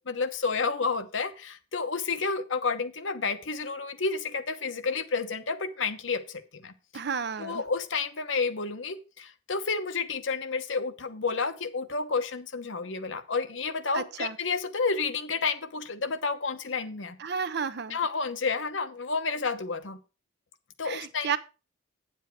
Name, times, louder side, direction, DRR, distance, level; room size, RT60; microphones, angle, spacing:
voice 1, 0.1-6.7 7.4-17.2 17.9-20.0 20.8-21.3, left 4 dB, 80° left, 9 dB, 1.1 m, -30 dB
voice 2, 6.9-7.6 13.9-14.4 17.2-18.0 20.8-21.4, right 6 dB, 60° right, 13 dB, 0.7 m, -32 dB
9.3 x 7.4 x 4.7 m, 0.31 s
head